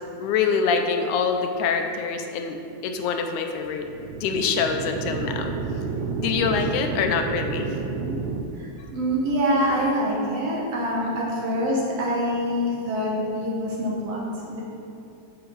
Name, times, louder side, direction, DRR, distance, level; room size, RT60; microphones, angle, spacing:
voice 1, 0.2-3.9 4.2-5.5 6.2-7.8, left 6 dB, 85° left, 5 dB, 2.1 m, -25 dB
sound 1, 3.8-8.4, right 4 dB, 80° right, 1.8 m, -30 dB
voice 2, 8.5-14.6, equal, 60° right, -4 dB, 2.1 m, -25 dB
7.8 x 5.1 x 5.5 m, 2.7 s
omnidirectional pair, 3.4 m